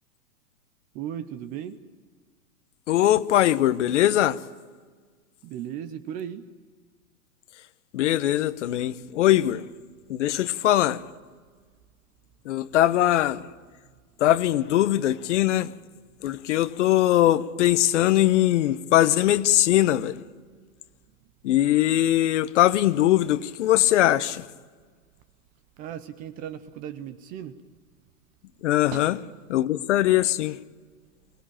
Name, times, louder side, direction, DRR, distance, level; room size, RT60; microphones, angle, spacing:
voice 1, 0.9-1.8 5.4-6.5 25.8-27.6 28.9-29.2, right 10 dB, 20° right, 0.6 m, -36 dB
voice 2, 2.9-4.4 7.9-9.6 10.1-11.0 12.5-13.4 14.2-15.7 16.2-20.1 21.4-24.4 28.6-29.1 29.5-30.6, left 13 dB, 50° left, 1.0 m, -21 dB
24.0 x 19.0 x 8.8 m
hypercardioid pair, 140°, 45 cm